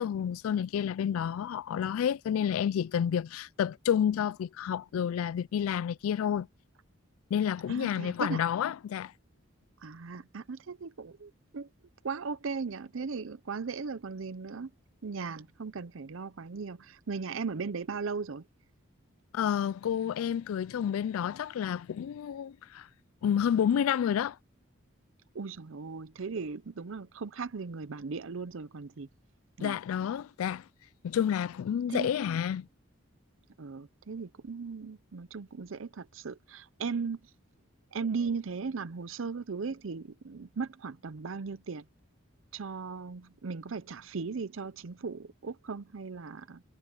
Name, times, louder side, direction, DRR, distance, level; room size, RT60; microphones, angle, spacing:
voice 1, 0.0-6.5 7.3-9.1 19.3-22.9 23.2-24.4 29.6-30.6 31.0-32.7, left 8 dB, 85° left, 0.3 m, -30 dB
voice 2, 7.7-8.4 9.8-11.7 12.0-14.7 15.0-18.4 25.3-29.1 29.6-29.8 31.9-32.1 33.6-37.2 37.9-41.8 42.5-46.6, right 5 dB, 75° right, 0.6 m, -37 dB
head